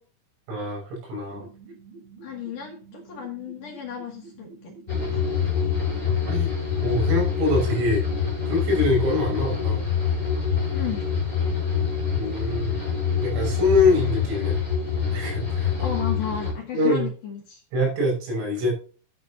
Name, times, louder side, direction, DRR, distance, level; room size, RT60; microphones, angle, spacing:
voice 1, 0.5-1.5 6.3-6.5 6.8-8.0 8.5-9.8 12.1-12.7 13.2-14.6 15.1-15.7 16.7-17.1 17.7-18.7, left 2 dB, 80° right, -1 dB, 8.6 m, -24 dB
sound 1, 1.3-6.4, right 4 dB, 65° right, 7.1 m, -47 dB
voice 2, 2.2-4.7 5.1-5.3 10.7-11.1 15.8-17.6, left 8 dB, 55° left, 1 dB, 2.8 m, -33 dB
sound 2, 4.9-16.5, left 6 dB, 10° left, 5.9 m, -25 dB
12.5 x 9.5 x 2.8 m, 0.37 s
omnidirectional pair, 5.7 m